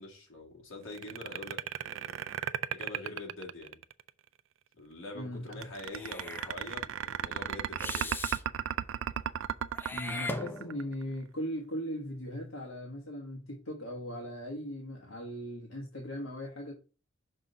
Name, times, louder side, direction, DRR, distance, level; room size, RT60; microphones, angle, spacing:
voice 1, 0.0-2.3 2.7-3.8 4.8-8.2, left 2 dB, 65° left, 2.2 m, -45 dB
sound 1, 0.9-4.1 5.5-11.0, right 9 dB, 65° right, 0.4 m, -34 dB
voice 2, 5.1-5.6 9.9-16.7, equal, 85° left, 1.3 m, -39 dB
Meow / Hiss, 5.9-6.5 7.8-8.4 9.7-11.0, left 2 dB, 10° left, 0.6 m, -39 dB
6.1 x 3.9 x 5.4 m
head